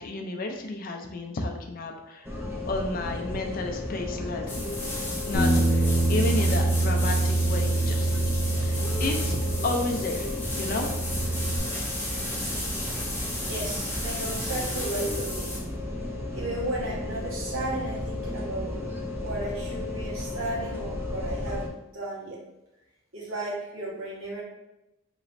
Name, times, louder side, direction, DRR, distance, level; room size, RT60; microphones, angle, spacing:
voice 1, 0.0-2.3 2.7-4.8 5.2-8.1 8.6-10.9, left 2 dB, 45° left, 3 dB, 0.4 m, -32 dB
sound 1, 2.2-21.7, left 1 dB, 10° right, 0.4 m, -34 dB
sound 2, 4.5-15.6, left 1 dB, 10° left, 0.8 m, -34 dB
Bass guitar, 5.3-10.1 10.4-11.6, right 2 dB, 85° left, 0.6 m, -25 dB
voice 2, 13.4-15.6 16.3-18.8 19.2-21.6 21.9-22.4 23.1-24.4, right 1 dB, 80° right, -5 dB, 1.3 m, -34 dB
4.0 x 3.0 x 2.6 m, 0.93 s
head